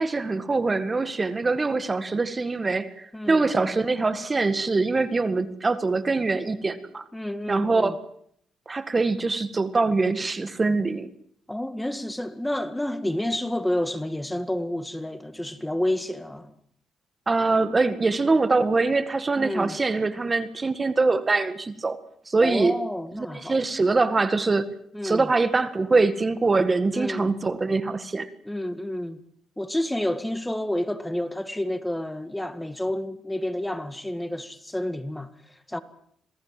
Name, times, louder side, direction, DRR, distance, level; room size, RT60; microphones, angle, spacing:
voice 1, 0.0-7.0 7.5-8.0 8.7-11.1 17.3-22.0 22.3-22.7 23.2-24.7 25.0-28.3, right 3 dB, 30° right, 1.8 m, -23 dB
voice 2, 3.1-3.5 7.1-7.9 11.5-16.5 19.4-19.8 22.4-23.6 24.9-25.3 26.9-27.3 28.5-29.2 29.6-35.8, left 1 dB, 10° left, 1.9 m, -29 dB
27.0 x 18.5 x 7.7 m
cardioid pair, 75°, 0 cm